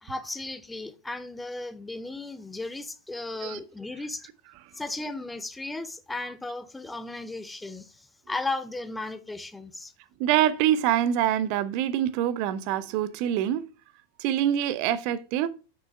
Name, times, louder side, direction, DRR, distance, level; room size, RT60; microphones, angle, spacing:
voice 1, 0.0-4.2 4.8-9.9, left 2 dB, 10° left, 0.5 m, -35 dB
voice 2, 10.2-13.7 14.2-15.5, right 11 dB, 45° right, 0.5 m, -25 dB
6.3 x 6.0 x 3.4 m
figure-of-eight pair, 90°, 0 cm